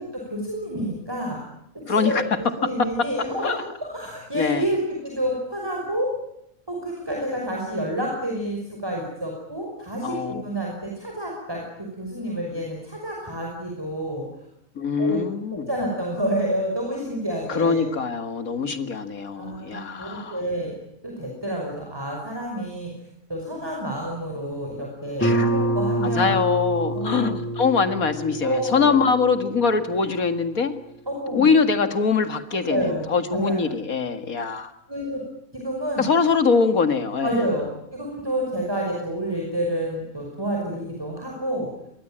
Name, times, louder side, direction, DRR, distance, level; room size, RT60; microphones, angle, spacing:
voice 1, 0.0-1.4 1.9-3.6 3.9-6.1 6.7-14.3 15.0-15.2 15.7-17.9 19.4-20.7 21.0-22.9 23.3-26.4 26.9-27.4 28.4-29.0 31.1-31.5 32.6-33.8 34.9-35.2 35.5-36.1 37.2-41.7, right 1 dB, 15° right, 0 dB, 5.8 m, -29 dB
voice 2, 1.9-2.2 2.6-3.1 3.4-3.6 4.3-4.6 10.0-10.4 14.8-15.7 17.5-20.4 25.2-25.5 26.0-30.8 31.3-34.7 36.0-37.5, left 5 dB, 80° left, 8 dB, 2.4 m, -23 dB
Guitar, 25.2-30.6, right 1 dB, 10° left, 4.0 m, -27 dB
26.5 x 22.5 x 9.0 m, 0.79 s
omnidirectional pair, 1.5 m